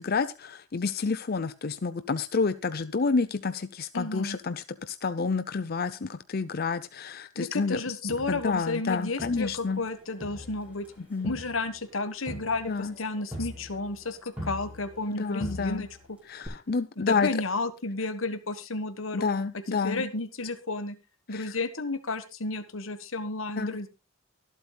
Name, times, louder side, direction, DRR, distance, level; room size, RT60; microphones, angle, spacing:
voice 1, 0.0-7.8 8.3-9.8 11.1-11.4 12.7-12.9 15.1-15.9 16.3-17.3 19.1-20.0 21.3-21.5 23.6-23.8, left 4 dB, 50° left, 12 dB, 0.6 m, -29 dB
voice 2, 3.9-4.4 7.3-10.9 11.2-15.9 17.0-19.3 19.8-21.0 21.3-23.9, left 3 dB, 80° left, 10 dB, 1.4 m, -32 dB
Crowd, 8.1-9.9 10.2-15.1 15.4-16.1 16.4-16.5, equal, 5° right, 6.2 m, -42 dB
23.5 x 8.2 x 2.3 m, 0.27 s
head